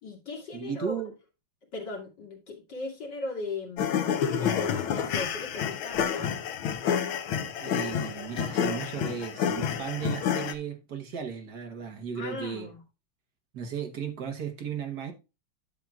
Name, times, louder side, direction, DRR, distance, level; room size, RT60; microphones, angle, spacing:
voice 1, 0.0-1.0 1.7-6.3 12.1-12.8, left 3 dB, 55° left, 2.9 m, -38 dB
voice 2, 0.5-1.1 7.6-12.7 13.5-15.1, right 7 dB, 55° right, 1.6 m, -35 dB
sound 1, 3.8-10.5, left 8 dB, 75° left, 1.7 m, -29 dB
10.0 x 7.5 x 2.4 m
omnidirectional pair, 2.3 m